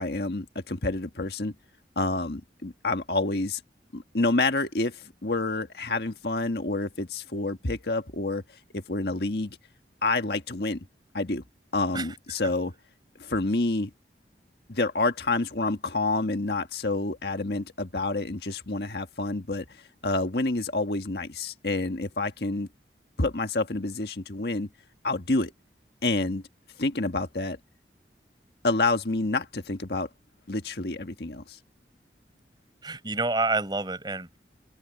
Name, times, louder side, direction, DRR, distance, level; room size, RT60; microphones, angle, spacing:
voice 1, 0.0-1.5 2.0-3.6 3.9-8.4 8.7-9.6 10.0-10.8 11.1-11.4 11.7-12.7 13.2-13.9 14.7-22.7 23.2-24.7 25.0-25.5 26.0-26.4 26.8-27.6 28.6-30.1 30.5-31.6, left 2 dB, 65° left, 1.6 m, -28 dB
voice 2, 32.8-34.4, right 3 dB, 25° right, 5.4 m, -28 dB
open air
head